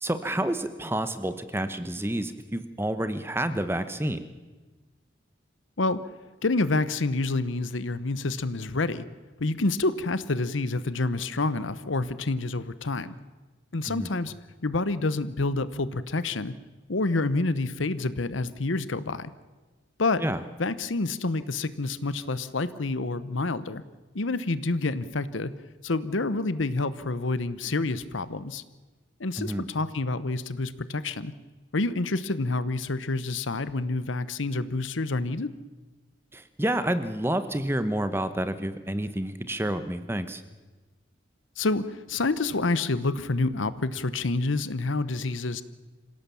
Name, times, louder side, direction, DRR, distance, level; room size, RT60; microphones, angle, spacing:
voice 1, 0.0-4.2 13.8-14.1 20.2-20.4 29.4-29.7 36.3-40.4, right 1 dB, 10° right, 11 dB, 1.0 m, -29 dB
voice 2, 6.4-9.0 9.4-13.1 13.7-14.3 14.6-16.5 16.9-19.3 20.0-20.2 20.6-23.8 24.1-25.5 25.8-28.6 29.2-31.3 31.7-35.5 41.6-45.6, left 3 dB, 80° left, 15 dB, 1.0 m, -28 dB
26.5 x 17.0 x 7.1 m, 1.3 s
head